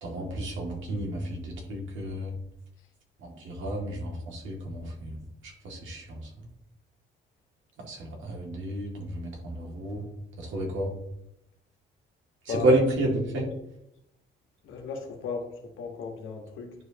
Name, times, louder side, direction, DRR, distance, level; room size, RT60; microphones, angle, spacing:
voice 1, 0.0-2.3 3.2-5.2 5.6-6.3 7.8-10.0 10.4-10.9 12.4-13.4, right 1 dB, 75° right, -1 dB, 2.4 m, -30 dB
voice 2, 12.5-12.8 14.6-16.7, left 5 dB, 80° left, 2 dB, 1.6 m, -35 dB
10.5 x 5.0 x 2.9 m, 0.80 s
cardioid pair, 90°, 20 cm